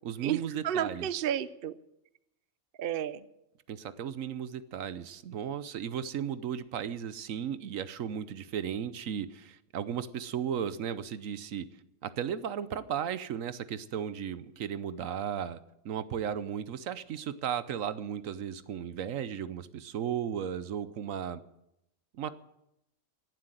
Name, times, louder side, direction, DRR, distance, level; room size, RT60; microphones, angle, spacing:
voice 1, 0.0-1.1 3.7-11.7 12.0-15.6 15.8-21.4 22.1-22.3, right 8 dB, 70° right, 15 dB, 1.1 m, -35 dB
voice 2, 0.6-1.7 2.8-3.2, right 10 dB, 55° right, 15 dB, 0.7 m, -31 dB
17.5 x 7.7 x 9.1 m, 0.85 s
omnidirectional pair, 1.5 m